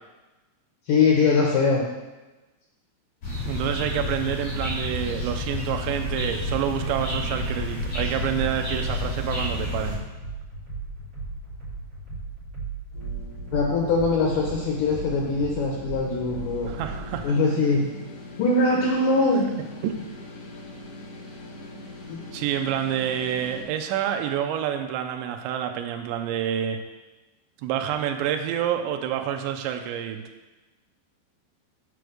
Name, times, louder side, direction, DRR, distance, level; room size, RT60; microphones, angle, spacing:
voice 1, 0.9-1.8 13.5-16.7 17.2-17.9 18.4-19.5 22.0-22.2, left 3 dB, 85° left, -2 dB, 1.9 m, -22 dB
sound 1, 3.2-10.0, left 1 dB, 35° left, 3.8 m, -30 dB
voice 2, 3.4-10.0 16.7-17.3 19.8-20.0 22.3-26.8 27.6-30.2, right 10 dB, 80° right, 5 dB, 2.8 m, -28 dB
sound 2, 6.0-17.2, right 3 dB, 35° right, 3.8 m, -37 dB
sound 3, 12.9-23.6, left 2 dB, 60° left, 2.7 m, -42 dB
7.8 x 4.9 x 6.5 m, 1.1 s
omnidirectional pair, 5.3 m